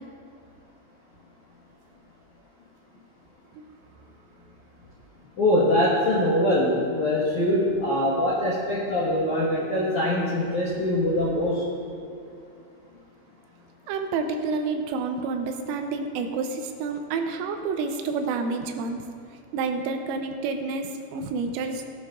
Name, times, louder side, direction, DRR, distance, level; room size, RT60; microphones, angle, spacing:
voice 1, 5.4-11.6, left 1 dB, 70° left, -7 dB, 1.8 m, -23 dB
voice 2, 13.9-19.0 19.5-21.9, right 4 dB, 85° right, 5 dB, 3.1 m, -29 dB
17.5 x 11.5 x 2.5 m, 2.5 s
omnidirectional pair, 6.0 m